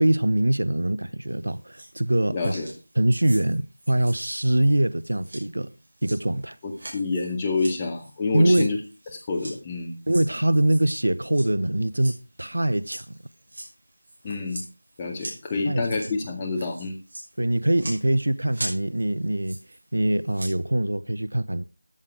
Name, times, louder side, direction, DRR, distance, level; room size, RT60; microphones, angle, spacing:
voice 1, 0.0-2.5 3.0-5.7 6.0-6.6 8.3-8.8 10.1-13.2 15.6-16.0 17.4-19.6 19.9-21.6, right 1 dB, 80° right, 0.8 m, -23 dB
sound 1, 1.3-2.1 2.4-9.6 10.0-11.5 11.8-16.2 16.5-19.9 20.2-20.5, right 1 dB, 55° right, 5.9 m, -42 dB
voice 2, 2.3-2.7 6.6-8.8 9.3-10.0 14.2-14.6 15.0-16.9, left 3 dB, 15° left, 1.9 m, -28 dB
14.0 x 8.7 x 4.8 m
figure-of-eight pair, 170°, 0 cm